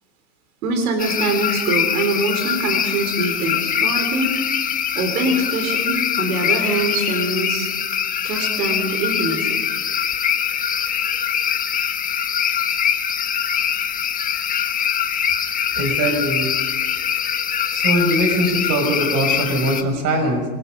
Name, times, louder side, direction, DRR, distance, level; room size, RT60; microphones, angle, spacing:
voice 1, 0.6-4.4 4.9-7.7 8.2-9.6, right 2 dB, 70° right, 6 dB, 4.3 m, -23 dB
sound 1, 1.0-19.8, left 8 dB, 20° left, 1.3 m, -23 dB
voice 2, 15.7-16.5 17.7-20.4, right 1 dB, 35° right, 5 dB, 6.5 m, -21 dB
26.0 x 21.0 x 5.4 m, 1.3 s
supercardioid pair, 130°, 45 cm